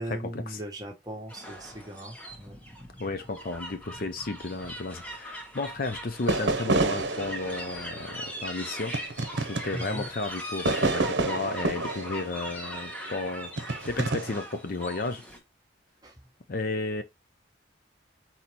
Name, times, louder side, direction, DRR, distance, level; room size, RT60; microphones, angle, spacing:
voice 1, 0.0-2.6 9.7-10.1 16.0-16.1, right 1 dB, 20° right, 1.2 m, -38 dB
sound 1, 1.3-15.4, equal, 5° left, 1.0 m, -40 dB
voice 2, 3.0-9.0 9.3-15.2 16.5-17.0, left 3 dB, 50° left, 0.6 m, -33 dB
sound 2, 6.3-10.2 10.7-13.1 13.6-14.4, right 2 dB, 65° right, 0.8 m, -29 dB
4.2 x 4.1 x 2.9 m
head